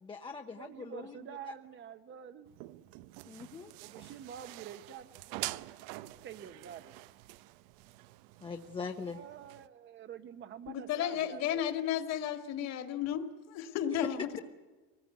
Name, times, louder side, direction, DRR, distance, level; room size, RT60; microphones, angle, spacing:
voice 1, 0.0-1.2 1.5-1.6 3.3-3.7 4.0-4.1 8.4-9.2 13.9-14.0, left 5 dB, 15° left, 4 dB, 0.7 m, -42 dB
voice 2, 0.5-2.5 3.8-5.8 6.0-6.9 9.1-11.6, right 9 dB, 30° right, 11 dB, 0.8 m, -48 dB
sound 1, 2.5-9.7, right 18 dB, 85° right, 0.9 m, -46 dB
voice 3, 10.7-14.3, left 10 dB, 45° left, 9 dB, 2.0 m, -33 dB
24.0 x 19.5 x 9.3 m, 1.3 s
cardioid pair, 175°, 35 cm